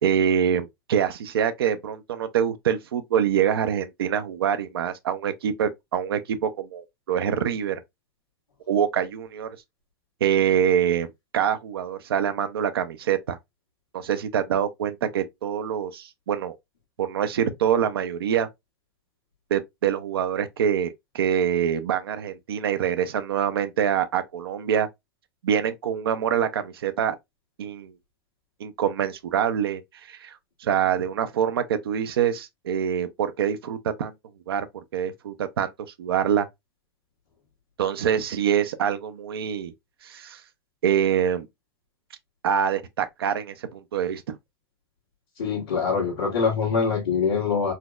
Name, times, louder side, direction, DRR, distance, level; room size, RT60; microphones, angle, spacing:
voice 1, 0.0-7.8 8.7-9.6 10.2-13.4 13.9-16.6 17.0-18.5 19.5-24.9 25.4-27.1 27.6-27.9 28.6-29.8 30.1-30.4 30.6-34.1 34.5-34.7 34.9-35.7 36.0-36.5 37.8-39.7 40.0-40.4 40.8-41.5 42.4-44.4, right 8 dB, 85° right, 0.4 m, -25 dB
voice 2, 45.4-47.7, left 5 dB, 90° left, 1.3 m, -24 dB
4.0 x 2.0 x 2.3 m
hypercardioid pair, 105°, 12 cm